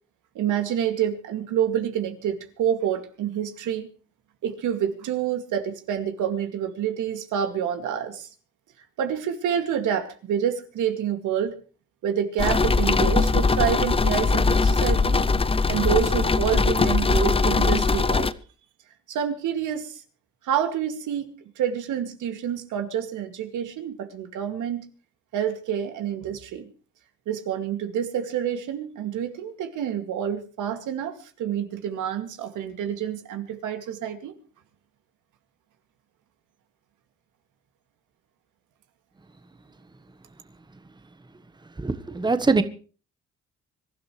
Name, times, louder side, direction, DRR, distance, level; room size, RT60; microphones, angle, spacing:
voice 1, 0.3-3.9 4.4-8.3 9.0-11.6 12.0-15.2 15.7-18.3 19.1-20.0 20.4-21.3 21.6-24.9 25.3-26.7 27.3-31.1 31.4-34.3, right 9 dB, 85° right, 6 dB, 2.5 m, -27 dB
sound 1, 12.4-18.3, left 4 dB, 20° left, 0.7 m, -21 dB
voice 2, 41.8-42.6, right 3 dB, 15° right, 10 dB, 1.3 m, -22 dB
25.0 x 12.5 x 3.3 m, 0.38 s
cardioid pair, 90°, 30 cm